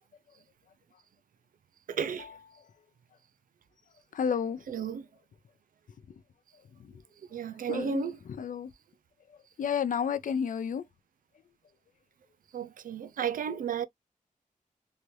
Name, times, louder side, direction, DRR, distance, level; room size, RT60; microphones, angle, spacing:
voice 1, 1.9-2.3 4.7-5.1 7.3-8.2 12.5-13.9, right 7 dB, 75° right, 0.4 m, -33 dB
voice 2, 4.1-4.6 6.8-6.9 7.7-8.1 8.4-8.7 9.6-10.8, left 7 dB, 70° left, 0.5 m, -31 dB
2.9 x 2.5 x 3.1 m
wide cardioid pair, 165°, 14 cm